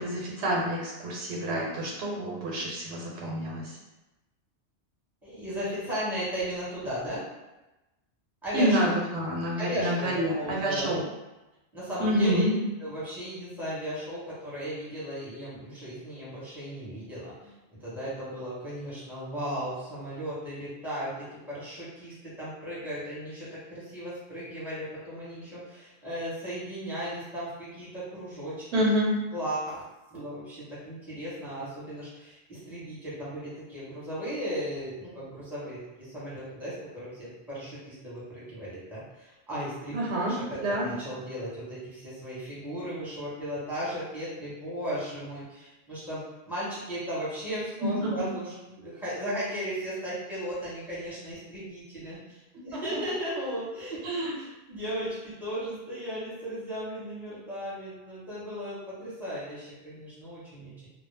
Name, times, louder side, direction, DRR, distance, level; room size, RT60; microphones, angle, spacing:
voice 1, 0.0-3.8 8.5-11.0 12.0-12.5 28.7-29.1 39.9-40.3 40.6-40.9 47.8-48.3 54.0-54.3, equal, 80° right, -3 dB, 0.9 m, -28 dB
voice 2, 5.2-7.2 8.4-8.9 9.6-10.9 11.7-12.5 12.8-17.5 17.8-28.8 29.3-29.8 30.1-40.0 40.3-60.9, equal, ahead, -10 dB, 0.9 m, -36 dB
2.1 x 2.0 x 3.2 m, 1.0 s
omnidirectional pair, 1.1 m